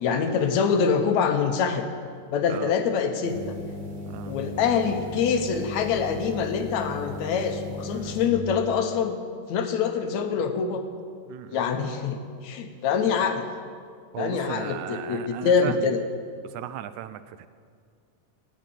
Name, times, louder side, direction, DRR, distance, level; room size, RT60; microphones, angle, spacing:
voice 1, 0.0-1.9 2.3-3.6 4.3-9.2 9.5-10.8 11.5-13.5 14.2-16.0, left 6 dB, 70° left, 6 dB, 2.2 m, -25 dB
sound 1, 3.2-8.3, left 1 dB, 30° right, 2.7 m, -37 dB
voice 2, 4.1-4.4 7.9-8.2 11.3-11.6 14.1-15.9 16.4-17.5, right 12 dB, 80° right, 12 dB, 2.0 m, -37 dB
14.5 x 8.8 x 9.2 m, 2.1 s
omnidirectional pair, 3.4 m